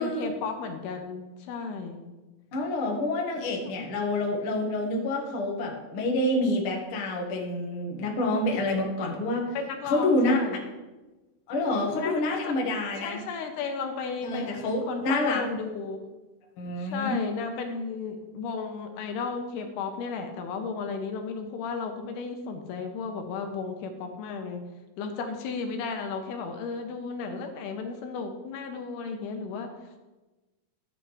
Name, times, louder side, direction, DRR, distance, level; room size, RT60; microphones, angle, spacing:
voice 1, 0.0-2.0 3.7-3.9 9.5-10.6 11.9-12.4 13.0-14.5 14.9-16.0 16.8-24.6 25.0-29.7, left 5 dB, 80° left, 5 dB, 2.8 m, -34 dB
voice 2, 2.5-9.6 9.9-10.4 11.5-13.2 14.2-15.4 16.6-17.2, left 2 dB, 55° left, -1 dB, 1.5 m, -27 dB
13.0 x 9.4 x 3.2 m, 1.2 s
omnidirectional pair, 4.8 m